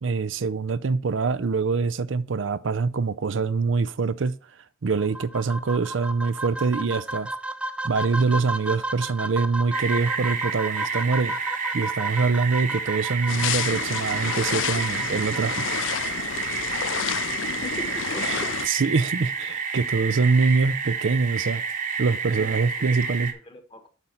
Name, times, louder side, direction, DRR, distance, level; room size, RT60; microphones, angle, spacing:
voice 1, 0.0-4.3 4.8-7.3 7.8-16.2 18.2-21.6 22.0-23.3, right 4 dB, 80° right, 0.5 m, -24 dB
sound 1, 5.0-16.0, right 1 dB, 5° right, 0.5 m, -33 dB
sound 2, 9.7-23.3, right 5 dB, 45° right, 1.1 m, -30 dB
sound 3, 13.3-18.7, left 9 dB, 80° left, 0.4 m, -30 dB
voice 2, 17.5-18.7 22.3-22.5 23.1-23.9, left 2 dB, 25° left, 1.3 m, -40 dB
8.2 x 5.6 x 4.4 m
head